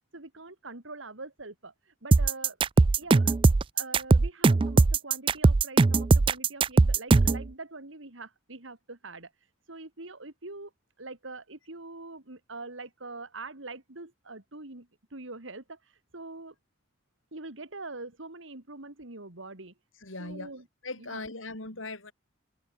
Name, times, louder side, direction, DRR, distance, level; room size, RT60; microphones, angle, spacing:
voice 1, 0.1-3.3 3.7-10.7 11.0-16.5 17.3-19.7 20.2-20.7 21.0-21.3, right 3 dB, 75° right, 2.7 m, -44 dB
sound 1, 2.1-7.4, right 3 dB, 25° right, 0.3 m, -20 dB
voice 2, 20.0-20.5 20.8-22.1, left 2 dB, 85° left, 4.6 m, -39 dB
head